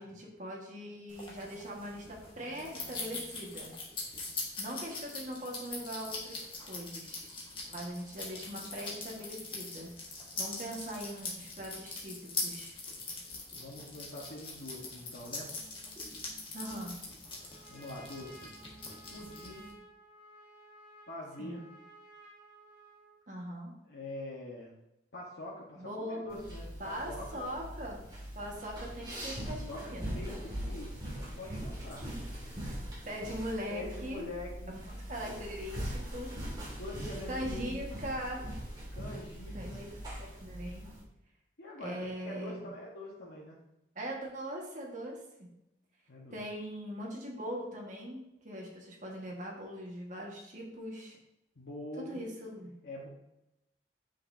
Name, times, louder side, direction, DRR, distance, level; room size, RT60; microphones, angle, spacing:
voice 1, 0.0-3.7 4.6-7.3 7.7-9.9 10.4-12.8 16.5-17.0 21.4-21.7 23.3-23.7 25.8-26.4 26.8-28.1 28.4-30.2 33.1-34.2 34.7-34.8 35.1-36.3 37.3-38.4 39.5-40.9 41.8-42.7 44.0-45.5 46.3-51.2 52.0-52.7, equal, 45° right, -1 dB, 1.7 m, -41 dB
sound 1, 1.1-19.7, left 3 dB, 30° left, 1.7 m, -42 dB
voice 2, 13.5-15.5 17.4-18.5 19.1-19.7 21.1-21.6 23.9-24.7 25.1-27.5 29.3-32.1 33.7-34.8 36.8-37.8 38.9-39.8 41.6-43.6 46.1-46.4 51.5-52.3 52.8-53.1, left 1 dB, 90° left, -6 dB, 1.4 m, -44 dB
Trumpet, 17.2-23.2, right 1 dB, 5° right, 2.7 m, -56 dB
sound 2, 26.3-41.0, equal, 20° right, 2.2 m, -41 dB
8.2 x 6.6 x 2.8 m, 0.88 s
head